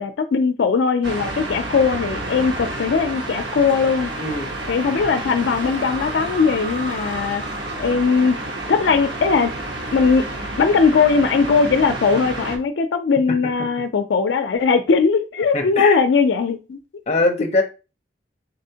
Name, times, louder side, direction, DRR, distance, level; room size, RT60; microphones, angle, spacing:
voice 1, 0.0-4.1 4.7-7.4 7.8-8.4 8.7-9.6 9.9-10.2 10.6-16.8, left 5 dB, 85° left, 0.4 m, -19 dB
sound 1, 1.0-12.6, right 2 dB, 90° right, 1.0 m, -29 dB
voice 2, 4.2-4.5 15.5-16.0 17.1-17.6, left 2 dB, 35° left, 0.7 m, -21 dB
4.0 x 3.4 x 2.7 m
head